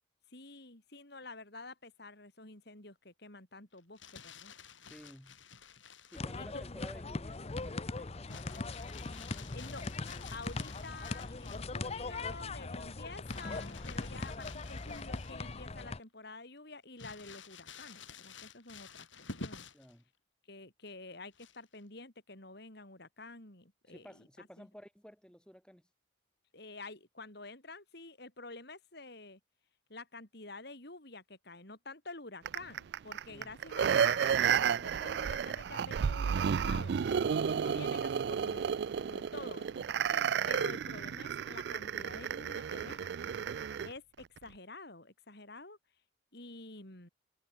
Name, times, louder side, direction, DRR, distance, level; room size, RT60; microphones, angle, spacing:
voice 1, 0.3-4.5 6.4-6.6 9.5-19.7 20.5-24.7 26.5-29.4 29.9-40.1 40.5-43.2 43.8-45.8 46.3-47.1, left 3 dB, 55° left, 4.6 m, -49 dB
Crumpling crinkling, 3.8-6.3 8.3-11.8 13.3-15.6 16.0-16.1 17.0-19.9 21.3-21.8, left 4 dB, 80° left, 5.7 m, -50 dB
voice 2, 4.8-5.4 6.1-8.8 19.7-20.0 23.9-25.8 33.3-33.5 40.0-40.4, equal, 5° left, 6.5 m, -54 dB
sound 1, 6.1-16.0, left 3 dB, 30° left, 0.7 m, -40 dB
sound 2, 32.5-43.9 44.4-44.5, right 7 dB, 60° right, 0.3 m, -32 dB
head